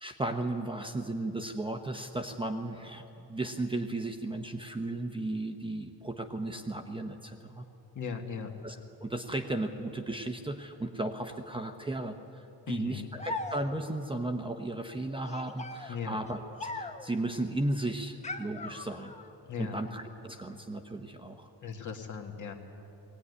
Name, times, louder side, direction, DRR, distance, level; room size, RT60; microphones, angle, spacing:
voice 1, 0.0-7.7 8.6-19.1 19.6-21.5, right 2 dB, 15° right, 5 dB, 0.9 m, -35 dB
voice 2, 7.9-8.5 12.7-13.1 15.9-16.2 19.4-19.8 21.6-22.5, left 6 dB, 45° left, 3 dB, 2.2 m, -38 dB
sound 1, 13.2-14.0 15.2-17.2 18.2-19.3, left 2 dB, 15° left, 1.0 m, -40 dB
21.0 x 17.5 x 9.8 m, 2.8 s
cardioid pair, 155°, 40 cm